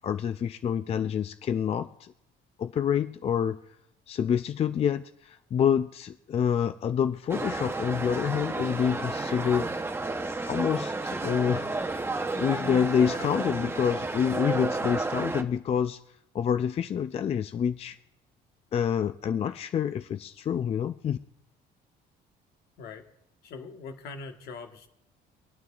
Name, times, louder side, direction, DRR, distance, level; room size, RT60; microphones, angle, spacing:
voice 1, 0.0-2.1 2.6-3.6 4.1-9.7 10.5-11.7 12.4-16.0 16.3-18.0 18.7-21.2, left 8 dB, 35° left, 11 dB, 0.4 m, -27 dB
sound 1, 7.3-15.4, right 3 dB, 15° right, 0.8 m, -31 dB
voice 2, 23.4-24.9, left 4 dB, 70° left, 5 dB, 1.4 m, -42 dB
24.0 x 9.2 x 2.4 m, 0.81 s
cardioid pair, 110°, 17 cm